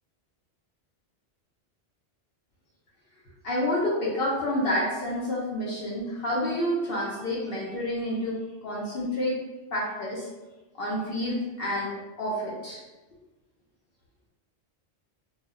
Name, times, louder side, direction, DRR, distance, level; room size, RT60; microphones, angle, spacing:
voice 1, 3.4-9.4 9.7-10.3 10.7-12.8, left 1 dB, 65° left, -5 dB, 0.8 m, -29 dB
2.1 x 2.1 x 3.5 m, 1.1 s
omnidirectional pair, 1.1 m